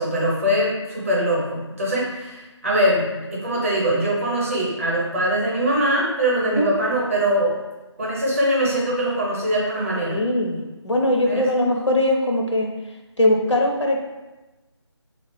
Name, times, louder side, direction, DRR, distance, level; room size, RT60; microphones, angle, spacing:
voice 1, 0.0-7.6 8.0-10.2 11.2-11.5, right 1 dB, 30° right, -4 dB, 0.8 m, -22 dB
voice 2, 9.9-12.7 13.2-14.0, left 1 dB, 80° left, 1 dB, 0.8 m, -21 dB
3.6 x 2.4 x 3.6 m, 1.1 s
figure-of-eight pair, 160°, 15 cm